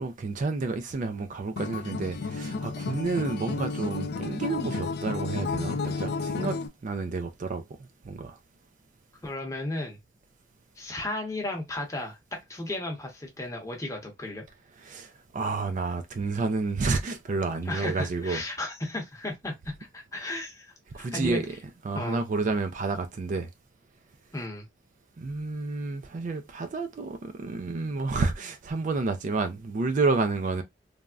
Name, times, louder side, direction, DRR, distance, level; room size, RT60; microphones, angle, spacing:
voice 1, 0.0-8.4 14.8-18.4 20.9-21.6 21.8-23.5 25.2-30.6, right 3 dB, 45° right, 0.3 m, -30 dB
Acoustic guitar, 1.6-6.7, left 4 dB, 55° left, 0.3 m, -32 dB
voice 2, 9.2-10.0 10.8-12.2 12.5-14.4 17.7-21.4 21.9-22.2 24.3-24.7, left 2 dB, 15° left, 0.9 m, -34 dB
3.3 x 2.1 x 2.4 m
head